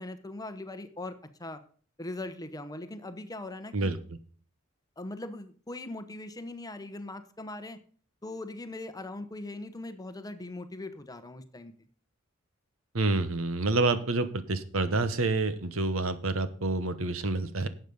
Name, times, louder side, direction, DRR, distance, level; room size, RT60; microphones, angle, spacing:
voice 1, 0.0-1.6 2.0-3.9 5.0-7.8 8.2-11.7, left 2 dB, 20° left, 10 dB, 1.0 m, -40 dB
voice 2, 12.9-17.7, right 3 dB, 70° right, 12 dB, 1.1 m, -28 dB
11.5 x 8.0 x 5.4 m, 0.43 s
head